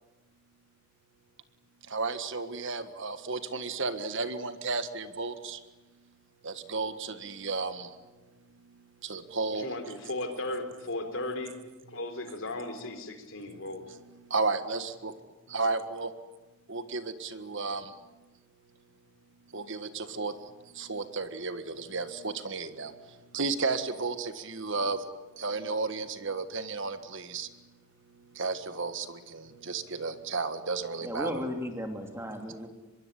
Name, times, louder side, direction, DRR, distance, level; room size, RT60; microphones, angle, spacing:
voice 1, 1.9-5.6 6.4-8.1 8.5-9.7 13.9-15.1 15.5-16.1 16.7-18.0 19.5-25.1 25.4-27.8 28.0-31.4, right 4 dB, 55° right, 10 dB, 1.6 m, -33 dB
voice 2, 9.5-11.6 11.9-13.8, left 2 dB, 60° left, 7 dB, 3.9 m, -36 dB
voice 3, 31.0-32.7, equal, 10° right, 4 dB, 2.9 m, -35 dB
24.5 x 22.0 x 10.0 m, 1.2 s
head